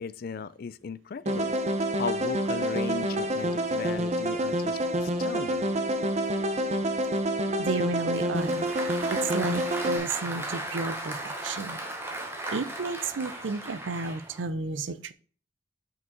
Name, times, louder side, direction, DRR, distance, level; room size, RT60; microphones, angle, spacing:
voice 1, 0.0-1.5 2.0-5.7, left 5 dB, 50° left, 0.4 m, -36 dB
sound 1, 1.3-10.0, right 1 dB, 35° right, 0.7 m, -28 dB
voice 2, 7.6-11.8 12.5-15.1, right 4 dB, 80° right, 0.6 m, -32 dB
Applause, 8.1-14.5, right 1 dB, 15° right, 1.1 m, -36 dB
5.8 x 5.3 x 3.9 m
head